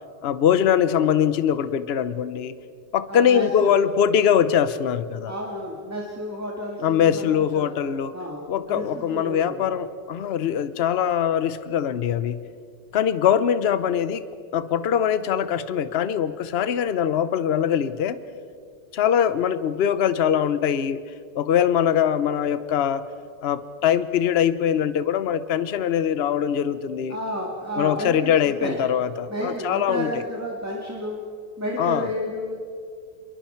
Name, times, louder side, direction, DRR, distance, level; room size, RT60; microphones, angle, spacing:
voice 1, 0.2-2.5 2.9-5.3 6.8-8.1 8.5-12.4 12.9-14.2 14.5-18.2 18.9-21.0 21.4-23.0 23.4-27.2 27.8-30.1 31.8-32.1, left 9 dB, 80° left, 13 dB, 0.5 m, -22 dB
voice 2, 3.1-3.8 5.3-7.7 8.1-9.7 27.1-28.8 29.3-31.2 31.6-32.6, equal, 10° right, -2 dB, 1.9 m, -31 dB
27.0 x 22.5 x 4.5 m, 2.2 s
omnidirectional pair, 2.1 m